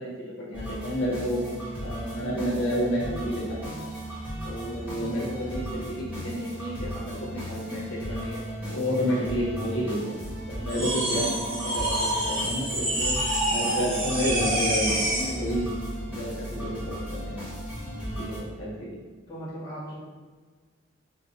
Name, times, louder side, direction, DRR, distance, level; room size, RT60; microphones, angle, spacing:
voice 1, 0.0-1.4 1.8-3.7 4.4-8.4 8.7-10.1 10.5-13.1 13.5-15.7 16.2-17.4 18.0-19.0, equal, 75° left, -5 dB, 1.0 m, -30 dB
sound 1, 0.5-18.4, equal, 10° right, 1.0 m, -36 dB
sound 2, 10.7-15.4, right 1 dB, 80° right, 1.0 m, -27 dB
voice 2, 19.3-20.0, right 1 dB, 20° left, -10 dB, 0.8 m, -37 dB
5.3 x 2.1 x 2.4 m, 1.5 s
head